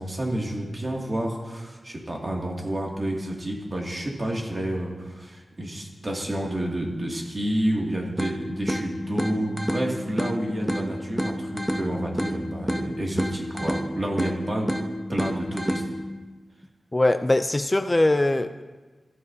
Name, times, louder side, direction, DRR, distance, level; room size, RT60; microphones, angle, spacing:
voice 1, 0.0-14.7 15.1-15.8, right 1 dB, 45° right, -2 dB, 2.3 m, -29 dB
sound 1, 8.2-16.2, equal, 5° right, 1.0 m, -30 dB
voice 2, 16.9-18.6, left 2 dB, 25° left, 9 dB, 0.5 m, -21 dB
14.5 x 9.6 x 2.8 m, 1.3 s
wide cardioid pair, 70°, 0 cm